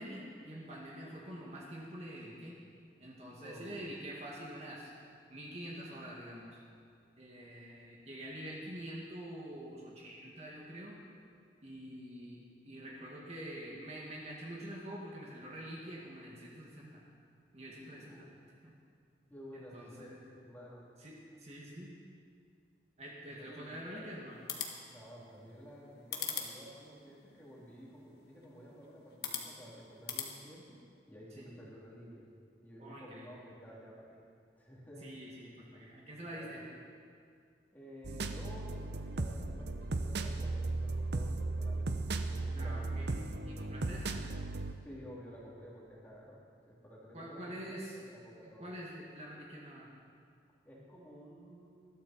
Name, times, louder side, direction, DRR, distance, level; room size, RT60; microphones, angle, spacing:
voice 1, 0.0-2.6 3.0-4.9 5.3-6.6 7.2-11.0 11.6-17.0 17.5-18.2 18.6-18.8 19.5-20.2 21.0-21.1 21.4-21.9 23.0-24.4 31.4-31.5 32.8-33.4 35.0-36.6 42.5-43.1 43.4-44.2 47.1-48.0 48.4-49.9, right 1 dB, 35° right, -4 dB, 2.1 m, -46 dB
voice 2, 3.4-3.8 18.0-18.3 19.3-20.8 23.2-24.1 24.9-30.8 31.1-32.3 32.6-34.2 34.6-35.1 36.3-36.8 37.7-41.9 42.3-43.0 44.8-48.7 50.6-51.9, equal, 10° left, -6 dB, 3.1 m, -52 dB
sound 1, 24.3-30.3, left 7 dB, 60° left, 1.7 m, -44 dB
sound 2, 38.0-44.7, right 2 dB, 70° right, 0.8 m, -36 dB
20.0 x 13.0 x 4.4 m, 2.3 s
head